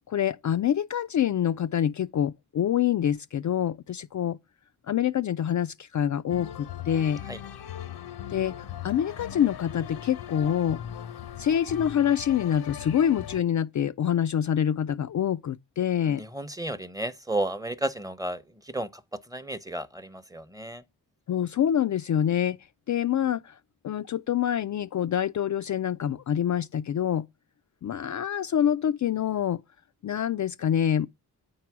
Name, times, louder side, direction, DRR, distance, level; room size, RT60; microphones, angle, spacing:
voice 1, 0.1-4.4 4.9-7.2 8.3-8.5 8.8-10.8 11.4-16.2 21.3-22.6 22.9-23.6 23.8-27.2 27.8-29.6 30.0-31.1, left 9 dB, 50° left, 0.4 m, -26 dB
sound 1, 6.3-13.4, left 10 dB, 70° left, 0.8 m, -39 dB
voice 2, 16.0-20.8, right 1 dB, 10° right, 0.8 m, -33 dB
8.9 x 4.7 x 6.0 m
cardioid pair, 65°, 40 cm